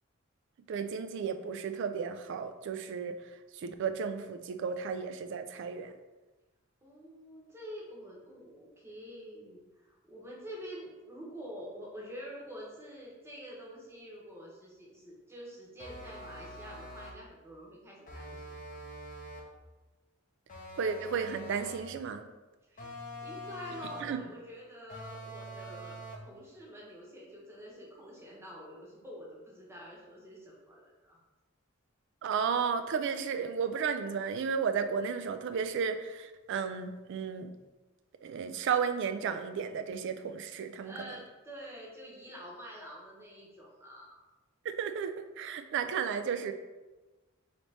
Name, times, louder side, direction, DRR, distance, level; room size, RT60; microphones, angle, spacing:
voice 1, 0.7-3.2 3.5-6.0 20.8-22.3 24.0-24.2 32.2-37.5 38.2-41.2 44.6-46.5, right 6 dB, 55° right, 9 dB, 0.3 m, -33 dB
voice 2, 6.8-18.5 22.7-31.2 40.8-44.2, equal, 10° right, -4 dB, 0.9 m, -47 dB
sound 1, 15.8-17.3 18.1-19.6 20.5-22.0 22.8-24.2 24.9-26.4, equal, 40° left, 0.6 m, -45 dB
3.4 x 3.0 x 4.1 m, 1.2 s
head